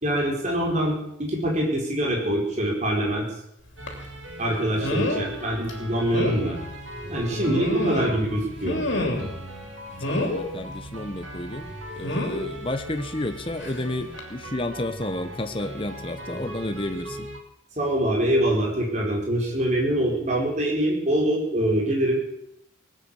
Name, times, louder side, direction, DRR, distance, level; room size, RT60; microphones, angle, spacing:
voice 1, 0.0-3.3 4.4-6.6 7.0-8.8 17.8-22.2, right 1 dB, 35° right, -2 dB, 4.5 m, -24 dB
sound 1, 3.8-17.4, right 1 dB, 75° right, 2.6 m, -39 dB
sound 2, 3.9-4.0 4.8-5.3 5.7-5.8 6.1-6.4 7.3-8.2 8.6-9.4 10.0-10.5 12.0-12.4 13.6-13.8 14.2-14.3, left 1 dB, 70° left, 3.0 m, -27 dB
voice 2, 10.1-17.3, left 1 dB, 25° left, 8 dB, 1.0 m, -31 dB
19.0 x 9.3 x 7.2 m, 0.75 s
head